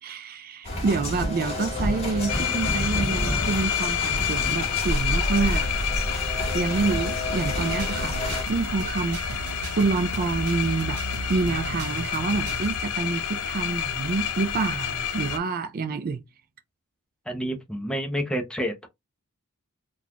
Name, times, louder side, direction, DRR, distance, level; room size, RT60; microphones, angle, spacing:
voice 1, 0.0-5.7 6.5-16.2, right 4 dB, 40° right, 0.4 m, -27 dB
sound 1, 0.6-8.4, left 1 dB, 30° left, 1.5 m, -29 dB
sound 2, 2.3-15.4, left 8 dB, 90° left, 0.6 m, -29 dB
sound 3, 7.5-12.8, right 1 dB, 85° right, 0.6 m, -35 dB
voice 2, 17.3-18.9, equal, 5° left, 0.7 m, -29 dB
3.9 x 2.4 x 2.8 m
head